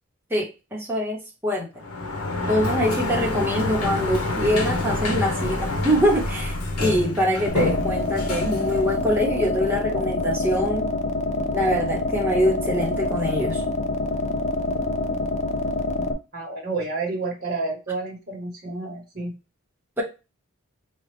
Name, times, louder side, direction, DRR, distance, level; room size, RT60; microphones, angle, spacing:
voice 1, 0.3-1.7 2.5-10.9 11.5-13.6 20.0-20.1, equal, 10° right, -3 dB, 1.0 m, -24 dB
Sliding door, 1.8-9.6, left 2 dB, 85° left, 0.9 m, -27 dB
sound 1, 7.5-16.1, left 2 dB, 30° left, 0.4 m, -26 dB
voice 2, 16.3-19.3, right 3 dB, 45° right, -2 dB, 1.1 m, -30 dB
4.4 x 2.3 x 3.2 m, 0.29 s
head